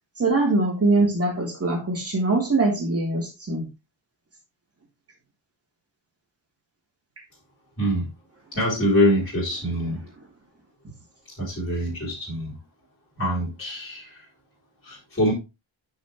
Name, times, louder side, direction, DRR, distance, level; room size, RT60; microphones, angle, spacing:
voice 1, 0.2-3.7, right 2 dB, 30° right, 0 dB, 3.5 m, -22 dB
voice 2, 7.8-8.1 8.5-10.0 11.4-12.6 13.2-14.3 14.8-15.3, equal, 25° left, -5 dB, 4.3 m, -24 dB
9.9 x 6.3 x 3.1 m, 0.25 s
wide cardioid pair, 170°, 48 cm